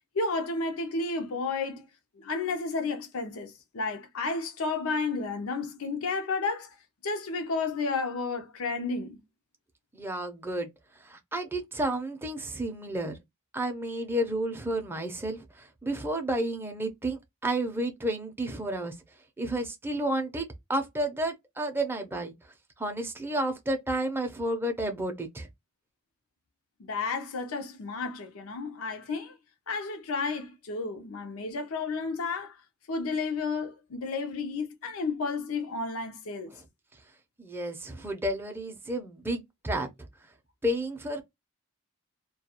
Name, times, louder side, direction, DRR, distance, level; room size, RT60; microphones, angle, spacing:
voice 1, 0.2-1.8 2.2-6.7 7.0-9.2 26.8-29.3 29.7-32.5 32.9-36.5, left 4 dB, 70° left, 0.6 m, -32 dB
voice 2, 9.9-10.7 11.0-13.2 13.5-18.9 19.4-22.3 22.8-25.5 36.5-36.6 37.4-39.9 40.6-41.2, right 1 dB, 10° right, 0.5 m, -31 dB
2.3 x 2.2 x 2.8 m
head